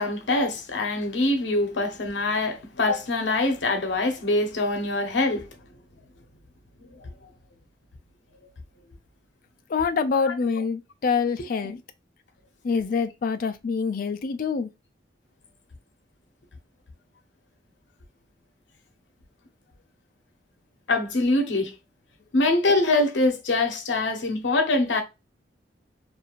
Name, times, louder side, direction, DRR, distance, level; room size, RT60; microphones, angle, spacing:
voice 1, 0.0-5.5 7.0-7.1 10.3-10.4 11.5-11.7 20.9-21.7 22.3-25.0, left 2 dB, 80° left, 0.8 m, -24 dB
voice 2, 9.7-11.8 12.6-14.7, left 5 dB, 50° left, 0.3 m, -26 dB
2.6 x 2.4 x 2.9 m
head